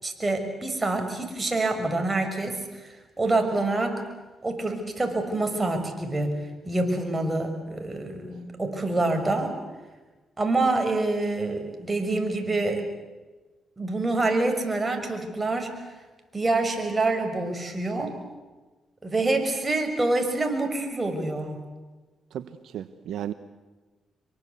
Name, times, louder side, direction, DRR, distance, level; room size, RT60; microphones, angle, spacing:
voice 1, 0.0-4.0 4.4-6.3 6.6-9.5 10.4-12.8 13.8-15.7 16.3-18.1 19.0-21.6, right 2 dB, 25° right, 5 dB, 6.3 m, -26 dB
voice 2, 22.3-23.3, right 10 dB, 75° right, 12 dB, 1.0 m, -34 dB
25.5 x 23.5 x 8.3 m, 1.2 s
supercardioid pair, 65°, 0 cm